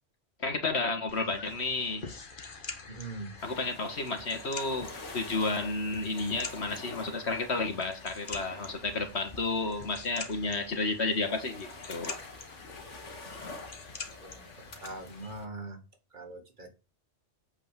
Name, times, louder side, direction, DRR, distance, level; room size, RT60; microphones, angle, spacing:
voice 1, 0.4-2.0 3.4-12.1, left 3 dB, 65° left, 1.9 m, -32 dB
sound 1, 1.1-15.3, left 4 dB, 45° left, 1.4 m, -46 dB
voice 2, 2.9-3.3 14.2-15.8 16.1-16.7, right 2 dB, 40° right, 2.0 m, -42 dB
sound 2, 3.4-15.5, left 3 dB, 90° left, 2.1 m, -48 dB
8.3 x 4.7 x 7.4 m
omnidirectional pair, 1.2 m